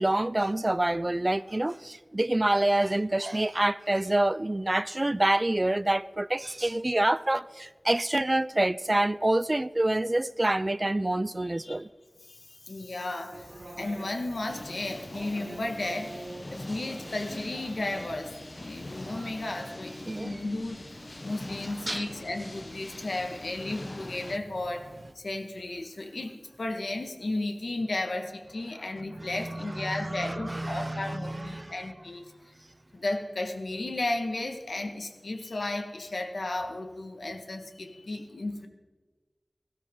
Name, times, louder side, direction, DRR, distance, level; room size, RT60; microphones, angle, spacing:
voice 1, 0.0-11.9 19.2-19.3 20.1-20.4 21.8-22.1 29.2-31.7, right 1 dB, 30° right, 0.4 m, -27 dB
voice 2, 11.4-11.8 12.2-16.1 16.5-20.8 21.2-24.9 25.2-32.3 32.9-38.7, left 2 dB, 75° left, 1.7 m, -34 dB
sound 1, 13.3-25.1, right 2 dB, 45° right, 1.1 m, -48 dB
sound 2, 14.5-24.4, left 1 dB, 35° left, 0.5 m, -43 dB
19.0 x 16.0 x 3.9 m
wide cardioid pair, 65°, 0 cm